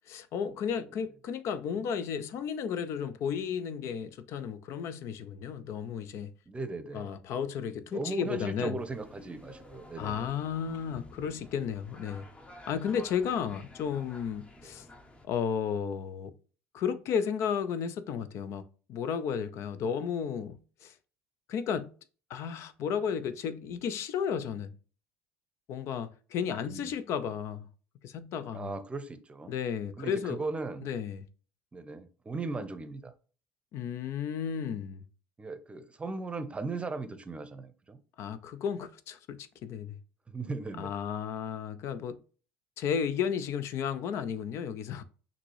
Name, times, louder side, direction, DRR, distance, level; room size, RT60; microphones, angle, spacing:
voice 1, 0.0-6.3 6.9-8.8 10.0-12.2 12.7-14.9 15.2-16.3 16.7-18.6 18.9-20.9 21.5-21.9 22.3-24.7 25.7-27.7 28.0-28.7 29.5-30.4 30.8-31.3 33.7-35.0 38.2-40.0 40.8-42.2 42.8-45.0, left 7 dB, 55° left, 0.5 m, -33 dB
voice 2, 6.5-7.1 7.9-10.3 14.6-14.9 26.6-27.0 28.5-29.5 30.0-30.9 31.7-33.1 35.4-38.0 40.3-40.9, right 3 dB, 20° right, 0.7 m, -38 dB
sound 1, 8.8-15.3, left 2 dB, 20° left, 0.8 m, -51 dB
5.8 x 2.7 x 3.1 m
hypercardioid pair, 70°, 6 cm